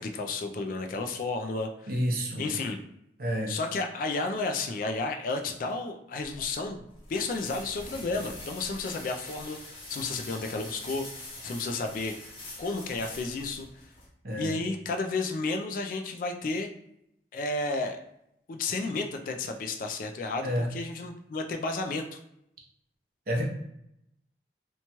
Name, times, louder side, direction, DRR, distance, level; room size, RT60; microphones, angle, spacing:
voice 1, 0.0-1.9 2.4-2.8 3.5-6.8 7.1-12.1 12.6-13.7 14.4-16.7 17.3-18.0 18.5-22.2, left 3 dB, 50° left, 4 dB, 0.3 m, -32 dB
voice 2, 1.9-2.5 3.2-3.5 14.2-14.6 20.4-20.7 23.3-23.4, equal, 55° right, 0 dB, 0.6 m, -29 dB
sound 1, 6.2-14.1, left 1 dB, 30° left, 0.7 m, -44 dB
2.9 x 2.2 x 2.8 m, 0.79 s
head